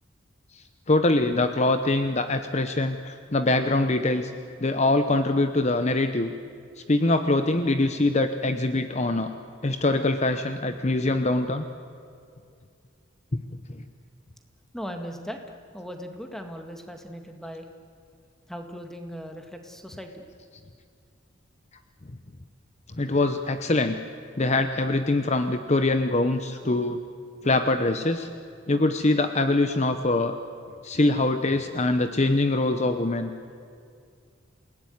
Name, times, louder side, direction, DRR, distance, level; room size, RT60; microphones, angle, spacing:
voice 1, 0.5-4.3 4.6-6.3 6.9-9.3 9.6-11.7 13.3-13.4 13.7-13.8 23.0-24.0 24.4-27.0 27.4-28.3 28.7-30.4 30.8-33.3, left 2 dB, 35° left, 8 dB, 0.9 m, -23 dB
voice 2, 14.7-15.4 15.7-17.7 18.5-20.2, equal, ahead, 4 dB, 2.1 m, -38 dB
28.0 x 18.0 x 9.6 m, 2.3 s
head